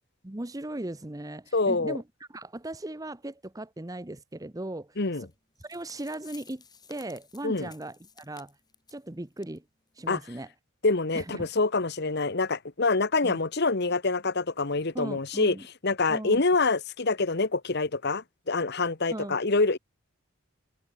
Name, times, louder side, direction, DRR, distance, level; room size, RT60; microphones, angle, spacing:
voice 1, 0.2-2.0 2.3-5.0 5.6-6.6 6.9-8.5 8.9-9.6 10.0-10.5 11.1-11.5 13.2-13.4 14.9-15.7 16.1-16.4 19.1-19.4, right 1 dB, 15° right, 0.9 m, -38 dB
voice 2, 1.5-2.0 5.0-5.3 7.4-7.7 10.1-10.2 10.8-15.5 15.8-19.8, left 3 dB, 50° left, 1.3 m, -26 dB
sound 1, 5.3-5.4 5.6-9.0 9.4-9.6 9.9-10.0 10.5-10.6, left 6 dB, 20° left, 7.4 m, -54 dB
open air
head